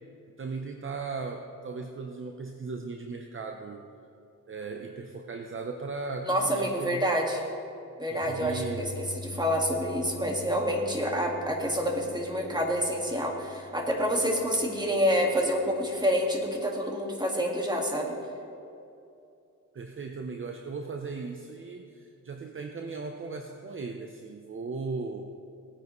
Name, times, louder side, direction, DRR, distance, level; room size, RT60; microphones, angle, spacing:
voice 1, 0.4-3.8 4.5-7.1 8.1-8.9 19.7-25.3, right 4 dB, 40° right, 4 dB, 0.8 m, -37 dB
voice 2, 6.2-7.4 8.0-18.1, equal, 15° right, 0 dB, 1.9 m, -28 dB
Piano, 8.2-16.3, left 2 dB, 5° left, 1.3 m, -45 dB
18.5 x 9.5 x 3.1 m, 2.6 s
cardioid pair, 90°, 32 cm